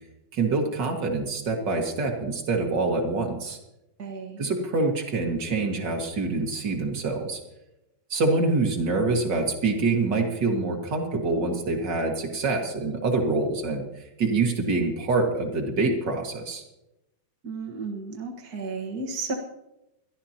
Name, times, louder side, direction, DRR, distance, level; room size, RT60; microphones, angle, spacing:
voice 1, 0.3-3.6 4.4-7.4 8.1-16.6, right 3 dB, 40° right, 1 dB, 1.7 m, -26 dB
voice 2, 4.0-4.5 17.4-19.3, right 4 dB, 70° right, 1 dB, 0.9 m, -33 dB
22.5 x 14.0 x 2.9 m, 0.91 s
omnidirectional pair, 4.4 m